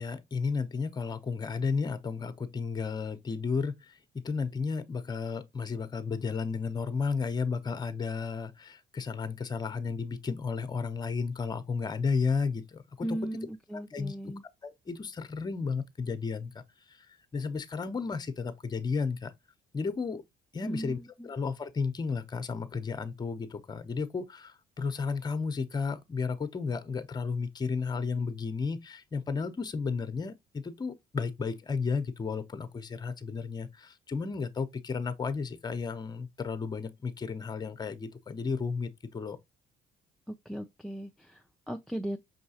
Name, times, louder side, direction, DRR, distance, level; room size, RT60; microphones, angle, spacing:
voice 1, 0.0-13.2 13.9-14.1 14.6-16.6 17.3-19.3 19.7-20.2 20.5-39.4, left 5 dB, 25° left, 0.7 m, -33 dB
voice 2, 13.0-14.4 20.6-21.3 40.3-42.2, right 1 dB, ahead, 0.4 m, -37 dB
5.5 x 3.0 x 2.8 m
cardioid pair, 110°, 17 cm